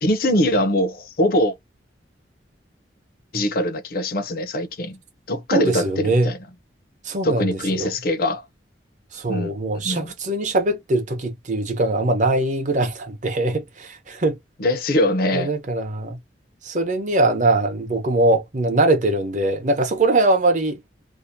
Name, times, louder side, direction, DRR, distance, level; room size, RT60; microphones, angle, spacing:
voice 1, 0.0-1.6 3.3-5.0 5.3-6.4 7.2-8.4 9.3-9.5 9.8-10.1 14.6-15.5, left 1 dB, 55° left, 0.6 m, -22 dB
voice 2, 5.5-6.3 7.0-7.9 9.1-14.4 15.3-16.2 16.6-20.8, right 2 dB, 45° right, 0.8 m, -21 dB
2.7 x 2.0 x 2.6 m
head